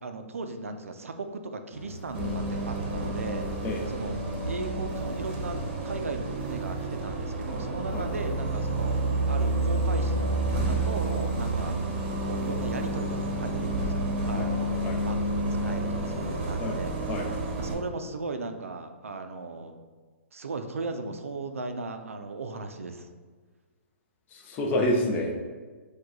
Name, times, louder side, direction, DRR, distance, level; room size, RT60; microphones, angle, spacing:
voice 1, 0.0-3.5 3.9-4.1 4.5-11.7 12.2-16.9 17.6-19.8 20.3-23.1, right 3 dB, 90° right, 7 dB, 0.4 m, -37 dB
sound 1, 1.7-13.5, left 1 dB, 55° left, 0.8 m, -45 dB
Bus, 2.1-17.7, right 2 dB, 45° right, 0.9 m, -29 dB
voice 2, 24.3-25.3, left 1 dB, 25° left, 1 dB, 0.6 m, -28 dB
4.7 x 2.3 x 3.8 m, 1.4 s
hypercardioid pair, 135°, 7 cm